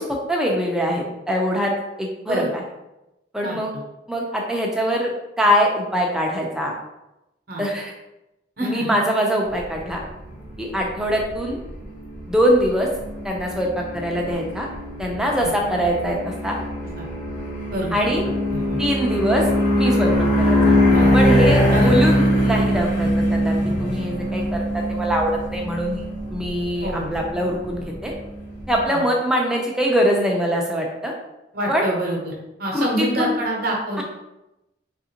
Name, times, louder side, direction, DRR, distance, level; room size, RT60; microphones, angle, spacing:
voice 1, 0.0-1.7 2.0-2.6 3.3-3.7 4.1-6.7 7.6-7.9 8.6-10.0 10.6-11.6 12.3-12.9 13.2-13.7 13.9-14.7 15.0-16.2 16.4-16.6 17.9-18.2 18.8-19.5 19.8-20.1 20.4-20.7 21.1-24.6 24.9-28.1 28.7-31.1 31.7-31.9 32.7-33.4 34.0-34.1, equal, 5° right, -1 dB, 0.4 m, -23 dB
voice 2, 3.4-3.8 7.5-7.6 8.6-8.9 10.7-10.9 15.4-15.5 17.0-17.1 17.7-18.0 18.5-18.8 20.9-21.2 21.7-22.0 26.8-27.1 28.9-29.1 31.5-32.3 32.6-34.0, right 1 dB, 55° right, -2 dB, 0.8 m, -26 dB
sound 1, 9.5-28.8, equal, 40° left, 0.8 m, -22 dB
3.5 x 2.5 x 2.8 m, 0.94 s
head